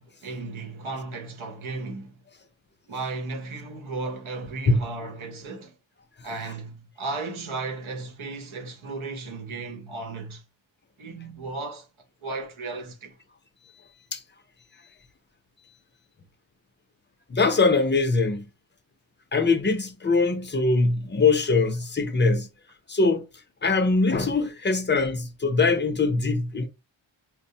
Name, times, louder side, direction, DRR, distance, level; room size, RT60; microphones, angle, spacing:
voice 1, 0.0-2.1 2.9-5.7 6.2-10.4 11.0-11.9 12.2-13.2, right 3 dB, 80° right, 0.9 m, -35 dB
voice 2, 17.3-18.5 19.3-22.5 22.9-23.2 23.6-26.7, left 3 dB, 25° left, 0.5 m, -22 dB
4.5 x 2.1 x 2.7 m
wide cardioid pair, 100°, 49 cm